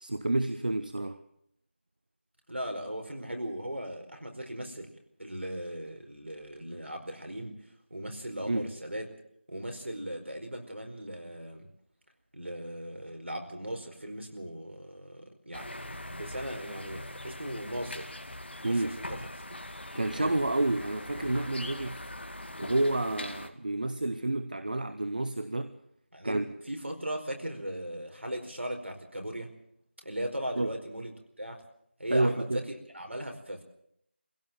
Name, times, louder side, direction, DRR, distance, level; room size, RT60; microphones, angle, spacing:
voice 1, 0.0-1.2 8.4-8.7 18.6-19.0 19.9-22.0 22.6-25.8 26.2-26.5 30.6-30.7 32.1-32.6, right 2 dB, 45° right, 10 dB, 1.0 m, -29 dB
voice 2, 2.5-4.9 5.2-7.6 7.9-9.1 9.5-11.7 12.3-18.2 18.6-19.6 20.1-20.3 26.1-29.5 30.0-31.1 31.4-31.6 32.0-33.6, equal, 70° right, 4 dB, 4.7 m, -38 dB
sound 1, 15.5-23.5, left 1 dB, 60° left, 2.2 m, -42 dB
21.0 x 16.5 x 7.5 m, 0.72 s
figure-of-eight pair, 175°, 7 cm